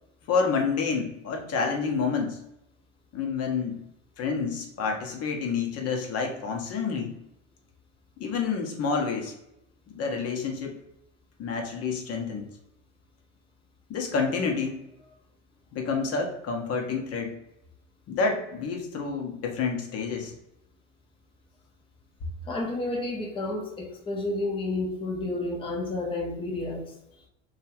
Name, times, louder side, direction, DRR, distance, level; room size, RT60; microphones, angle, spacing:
voice 1, 0.3-2.4 3.1-3.8 4.2-7.1 8.2-9.3 9.9-10.8 11.4-12.4 13.9-14.8 15.7-17.3 18.1-20.3, left 5 dB, 40° left, 2 dB, 0.8 m, -28 dB
voice 2, 22.5-26.8, left 2 dB, 15° left, -1 dB, 0.7 m, -30 dB
2.8 x 2.4 x 2.8 m, 0.85 s
hypercardioid pair, 90°, 37 cm